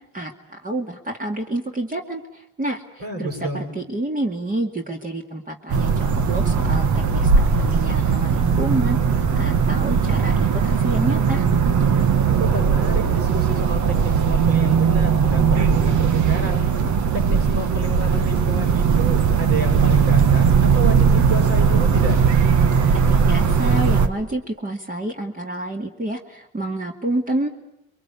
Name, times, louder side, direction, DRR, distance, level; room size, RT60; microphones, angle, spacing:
voice 1, 0.1-2.8 3.2-9.0 9.3-11.4 23.1-27.5, right 1 dB, 25° right, 2 dB, 2.4 m, -28 dB
voice 2, 3.0-3.8 12.3-16.6 17.1-22.2, right 2 dB, 55° right, 1 dB, 7.2 m, -30 dB
sound 1, 5.7-24.1, right 6 dB, 75° right, 1.8 m, -18 dB
27.0 x 23.0 x 8.5 m, 0.81 s
cardioid pair, 90°, 30 cm